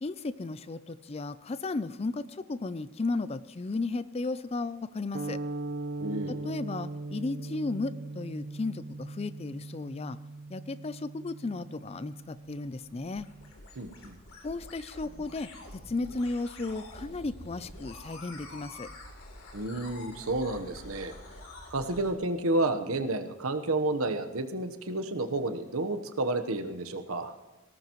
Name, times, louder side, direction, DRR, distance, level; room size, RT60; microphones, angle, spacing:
voice 1, 0.0-5.4 6.3-10.2 10.5-13.3 14.4-18.9, left 3 dB, 30° left, 15 dB, 0.4 m, -34 dB
sound 1, 5.1-13.5, right 2 dB, 40° right, 0.5 m, -40 dB
voice 2, 6.0-6.3 13.8-14.2 19.5-21.1 21.7-27.3, right 2 dB, 90° right, 8 dB, 1.1 m, -31 dB
sound 2, 12.2-22.1, left 2 dB, 85° left, 3.1 m, -47 dB
18.5 x 18.0 x 3.1 m, 0.99 s
head